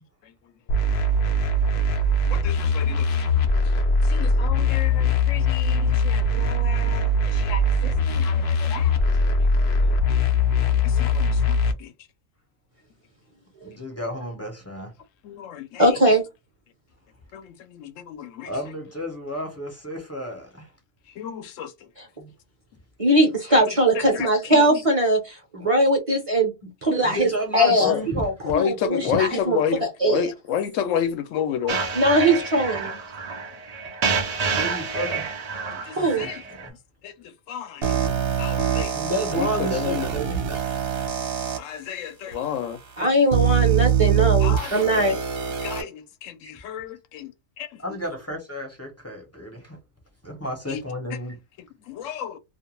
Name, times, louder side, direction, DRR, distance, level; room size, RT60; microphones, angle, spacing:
sound 1, 0.7-11.7, left 2 dB, 60° left, 0.6 m, -21 dB
voice 1, 2.3-3.2 4.1-8.9 10.8-11.9 15.2-16.0 17.3-18.5 21.2-21.7 23.9-24.7 26.9-27.1 27.8-28.0 28.4-31.8 35.6-36.4 37.0-37.1 37.5-37.9 38.4-38.9 39.3-40.1 41.6-42.8 44.4-45.2 45.6-47.3 47.6-47.8 50.7-50.8 51.9-52.4, left 9 dB, 80° left, 0.9 m, -31 dB
voice 2, 13.6-14.9 18.4-20.7 22.2-22.3 27.0-28.3 34.5-35.3 36.0-36.7 37.8-38.0 38.9-40.4 46.4-46.5 47.8-49.8 50.2-51.4, equal, 15° left, 0.6 m, -32 dB
voice 3, 15.8-16.2 22.0-22.1 23.0-30.3 31.9-33.0 35.9-36.3 43.0-45.2, right 1 dB, 35° right, 0.7 m, -21 dB
sound 2, 31.7-36.7, right 4 dB, 75° right, 0.3 m, -28 dB
sound 3, 37.8-41.6 42.3-42.4 43.3-45.8, right 9 dB, 55° right, 1.0 m, -24 dB
2.4 x 2.2 x 2.9 m
omnidirectional pair, 1.3 m